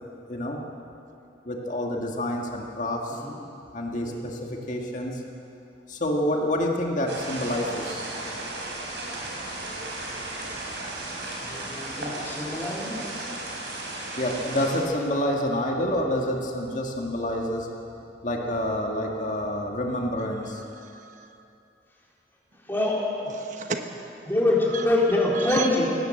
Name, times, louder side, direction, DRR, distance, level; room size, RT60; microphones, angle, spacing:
voice 1, 0.3-0.6 1.4-3.2 3.7-5.2 5.9-7.9 14.2-17.7 18.2-20.6, left 1 dB, 45° left, 0 dB, 1.9 m, -28 dB
sound 1, 7.1-14.8, right 2 dB, 80° right, 5.5 m, -35 dB
voice 2, 11.4-13.1 22.7-23.0 24.3-25.9, left 2 dB, 10° left, -4 dB, 4.0 m, -25 dB
voice 3, 20.2-21.4 23.2-24.3 24.6-24.9 25.3-25.7, right 5 dB, 45° right, 6 dB, 1.0 m, -36 dB
19.0 x 17.5 x 7.8 m, 2.7 s
head